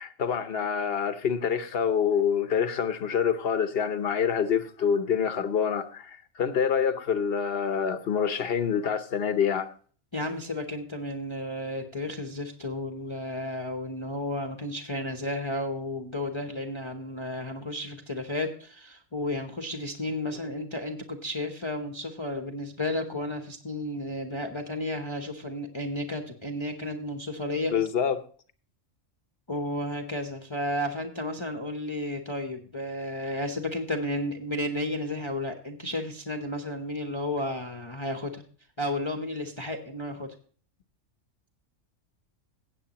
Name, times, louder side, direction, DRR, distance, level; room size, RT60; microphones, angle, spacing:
voice 1, 0.0-9.7 27.7-28.2, left 7 dB, 55° left, 1.0 m, -26 dB
voice 2, 10.1-27.7 29.5-38.4 38.8-40.3, left 1 dB, 25° left, 0.9 m, -32 dB
16.0 x 8.1 x 2.9 m
omnidirectional pair, 1.3 m